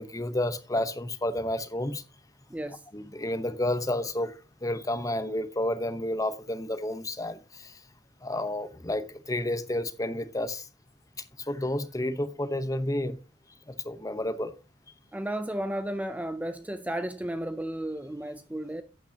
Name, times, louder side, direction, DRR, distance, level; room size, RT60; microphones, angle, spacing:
voice 1, 0.0-2.0 2.9-7.8 8.2-10.7 11.4-13.2 13.7-14.5, left 1 dB, 20° left, 0.8 m, -31 dB
voice 2, 2.5-2.8 15.1-18.8, right 1 dB, 10° right, 0.4 m, -33 dB
11.5 x 9.0 x 2.8 m
head